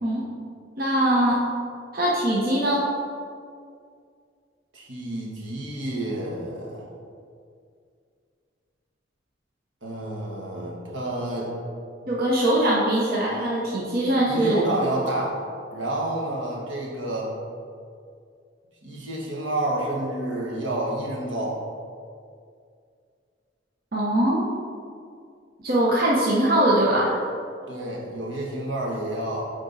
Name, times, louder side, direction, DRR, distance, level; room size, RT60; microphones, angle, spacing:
voice 1, 0.8-1.4 1.9-2.8 12.1-14.6 23.9-24.5 25.6-27.1, right 1 dB, 55° right, -4 dB, 0.9 m, -21 dB
voice 2, 4.7-6.9 9.8-11.5 14.3-15.4 15.7-17.3 18.8-21.6 27.7-29.4, right 1 dB, 85° right, -3 dB, 1.4 m, -29 dB
8.8 x 3.7 x 4.0 m, 2.3 s
head